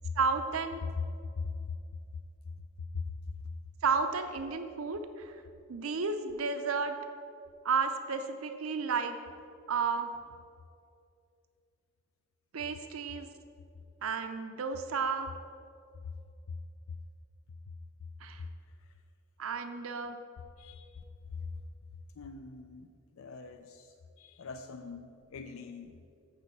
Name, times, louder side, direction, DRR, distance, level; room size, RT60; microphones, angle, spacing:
voice 1, 0.2-0.9 3.8-5.4 5.7-7.0 7.6-9.2 9.7-10.1 12.5-13.3 14.0-15.3 18.2-18.4 19.4-20.2, right 5 dB, 85° right, 7 dB, 0.6 m, -32 dB
voice 2, 20.6-21.0 21.3-21.5 22.1-26.0, left 4 dB, 80° left, 7 dB, 0.4 m, -43 dB
7.3 x 6.2 x 6.8 m, 2.5 s
head